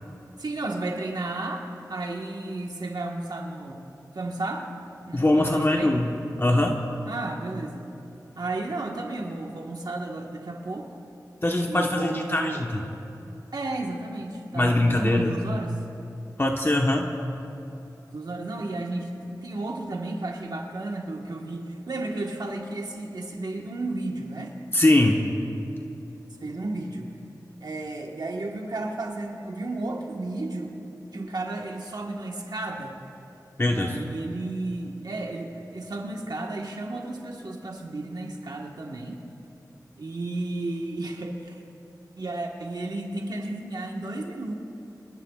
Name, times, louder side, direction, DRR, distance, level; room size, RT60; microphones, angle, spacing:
voice 1, 0.4-1.6 1.9-3.8 4.1-4.7 5.1-6.0 7.1-7.9 8.3-10.9 11.7-12.6 13.5-15.8 18.1-24.6 26.4-27.1 27.6-30.8 31.1-33.0 33.7-39.2 40.0-41.6 42.2-44.5, right 2 dB, 75° right, 1 dB, 1.4 m, -33 dB
voice 2, 5.1-6.1 6.4-6.8 11.4-12.8 14.5-15.3 16.4-17.1 24.7-25.2 33.6-34.0, left 1 dB, 35° left, 1 dB, 1.1 m, -22 dB
26.5 x 21.0 x 2.4 m, 2.9 s
wide cardioid pair, 55°, 7 cm